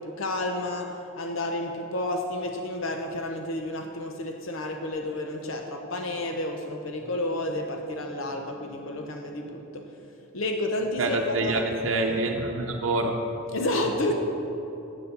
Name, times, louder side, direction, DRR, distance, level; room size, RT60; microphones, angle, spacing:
voice 1, 0.0-9.8 10.3-11.6 13.5-14.1, left 1 dB, 80° left, 3 dB, 0.7 m, -30 dB
voice 2, 11.0-13.1, right 2 dB, 70° right, 1 dB, 0.7 m, -26 dB
8.5 x 6.9 x 6.7 m, 2.9 s
head